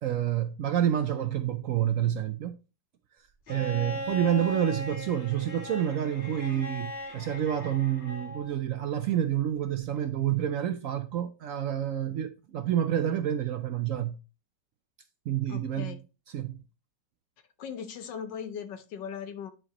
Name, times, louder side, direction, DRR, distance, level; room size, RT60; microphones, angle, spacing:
voice 1, 0.0-2.5 3.5-14.1 15.3-16.0 16.3-16.6, right 10 dB, 75° right, 0.7 m, -28 dB
Bowed string instrument, 3.5-8.5 10.0-10.1, left 1 dB, 35° left, 2.2 m, -39 dB
voice 2, 15.5-16.0 17.6-19.5, left 7 dB, 80° left, 1.5 m, -39 dB
10.0 x 4.6 x 2.9 m
omnidirectional pair, 1.9 m